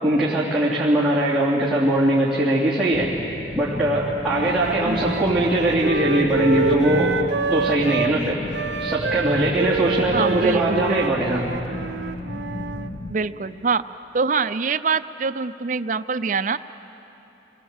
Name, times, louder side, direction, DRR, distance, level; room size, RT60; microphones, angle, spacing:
voice 1, 0.0-3.1 3.5-7.1 7.5-8.4 8.8-11.4, right 1 dB, 5° right, -10 dB, 3.0 m, -21 dB
sound 1, 2.9-13.1, left 1 dB, 50° left, 1.1 m, -33 dB
Wind instrument woodwind instrument, 4.2-8.1 8.5-12.9, right 4 dB, 65° right, 0.8 m, -28 dB
voice 2, 10.1-11.0 13.1-13.8 14.1-16.6, right 5 dB, 40° right, 13 dB, 0.5 m, -24 dB
29.5 x 22.0 x 8.1 m, 3.0 s
head